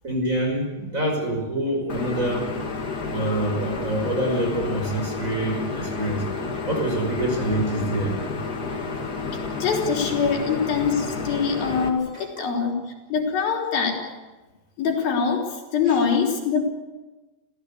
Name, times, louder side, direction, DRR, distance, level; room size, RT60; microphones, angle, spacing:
voice 1, 0.0-2.5 3.1-6.2 6.7-8.4 12.1-12.5 15.9-16.0, right 1 dB, 20° right, 2 dB, 5.6 m, -26 dB
sound 1, 1.9-11.9, left 4 dB, 35° left, 2.1 m, -30 dB
voice 2, 9.6-12.8 13.1-14.0 14.8-16.7, left 6 dB, 75° left, 0 dB, 5.3 m, -23 dB
29.5 x 15.5 x 8.4 m, 1.2 s
omnidirectional pair, 4.3 m